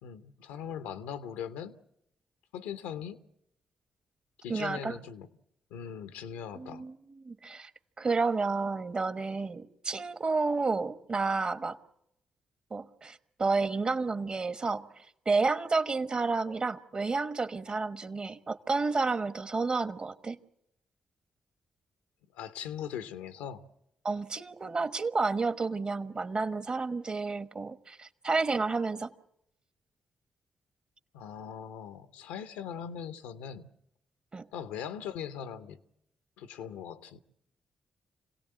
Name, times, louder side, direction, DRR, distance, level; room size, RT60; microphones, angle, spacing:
voice 1, 0.0-1.8 2.5-3.2 4.4-5.3 5.7-6.8 22.3-23.6 31.1-33.7 34.5-35.8 36.4-37.2, left 8 dB, 90° left, 0.9 m, -40 dB
voice 2, 4.5-5.0 6.5-7.7 8.0-11.8 12.7-20.4 24.0-29.1 34.3-34.5, right 4 dB, 40° right, 1.2 m, -31 dB
26.5 x 17.5 x 7.8 m
supercardioid pair, 50°, 2 cm